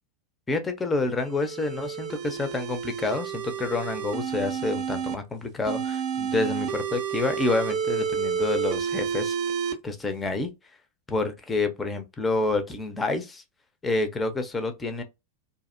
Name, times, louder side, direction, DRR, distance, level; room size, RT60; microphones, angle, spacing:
voice 1, 0.5-9.3 9.7-10.5 11.1-13.4 13.8-15.0, left 3 dB, 15° left, 0.5 m, -28 dB
sound 1, 1.2-5.2 5.7-9.7, right 7 dB, 40° right, 0.5 m, -30 dB
2.5 x 2.0 x 2.4 m
figure-of-eight pair, 90°, 0 cm